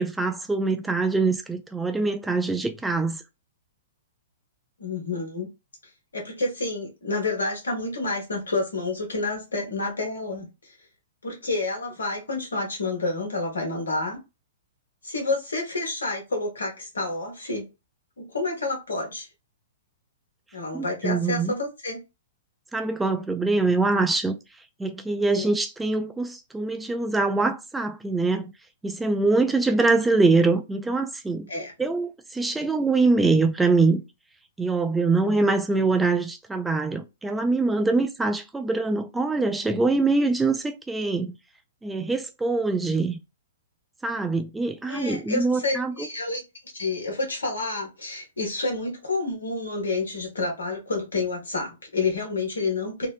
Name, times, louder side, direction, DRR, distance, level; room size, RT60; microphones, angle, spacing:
voice 1, 0.0-3.2 20.7-21.5 22.7-24.4 24.8-28.5 28.8-31.5 31.8-34.0 34.6-41.4 41.8-43.2 44.0-46.1, right 3 dB, 10° right, 0.3 m, -24 dB
voice 2, 4.8-5.5 6.1-10.7 11.2-14.2 15.0-17.7 18.2-19.3 20.5-22.0 25.2-25.5 31.5-31.7 44.9-46.4 46.7-53.1, left 3 dB, 80° left, 1.2 m, -29 dB
2.7 x 2.1 x 2.4 m
figure-of-eight pair, 115°, 0 cm